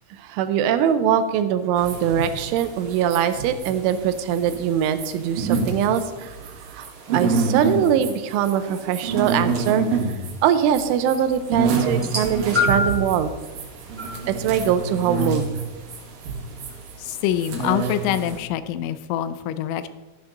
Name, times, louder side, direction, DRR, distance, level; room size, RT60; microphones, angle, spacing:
voice 1, 0.2-6.9 7.1-9.9 10.4-13.3 14.3-15.5, right 9 dB, 80° right, 10 dB, 3.1 m, -22 dB
sound 1, 1.8-18.4, right 4 dB, 60° right, 2.7 m, -28 dB
sound 2, 11.9-13.1 14.0-14.2 15.2-15.3, left 3 dB, 5° right, 0.9 m, -24 dB
voice 2, 17.0-19.9, left 11 dB, 85° left, 12 dB, 2.9 m, -25 dB
13.0 x 10.5 x 3.9 m, 1.2 s
omnidirectional pair, 5.6 m